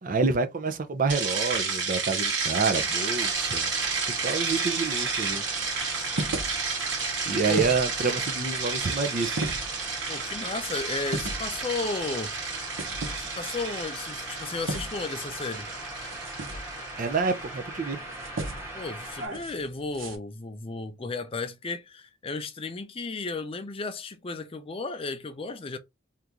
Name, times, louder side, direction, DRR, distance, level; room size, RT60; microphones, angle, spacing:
voice 1, 0.0-3.7 4.1-5.4 7.2-9.4 17.0-18.0, right 4 dB, 45° right, 0.5 m, -28 dB
sound 1, 1.1-17.4, right 5 dB, 60° right, 1.4 m, -31 dB
sound 2, 2.7-19.3, right 1 dB, 15° right, 1.3 m, -40 dB
sound 3, 3.3-20.2, right 2 dB, 85° right, 0.9 m, -39 dB
voice 2, 10.1-12.3 13.2-15.7 18.7-25.8, left 3 dB, 30° left, 0.4 m, -34 dB
2.9 x 2.5 x 3.5 m
head